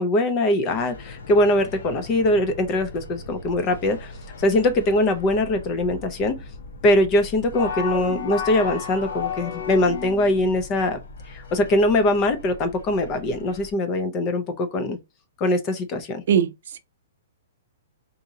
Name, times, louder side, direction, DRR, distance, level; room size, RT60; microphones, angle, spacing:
voice 1, 0.0-4.1 4.4-6.4 6.8-11.0 11.3-15.0 15.4-16.2, left 1 dB, 20° left, 0.5 m, -22 dB
sound 1, 0.7-13.7, left 2 dB, 70° left, 0.9 m, -41 dB
sound 2, 7.5-10.4, left 6 dB, 45° left, 1.0 m, -30 dB
voice 2, 16.3-16.8, right 8 dB, 55° right, 0.6 m, -21 dB
4.0 x 2.8 x 3.6 m
hypercardioid pair, 175°, 0 cm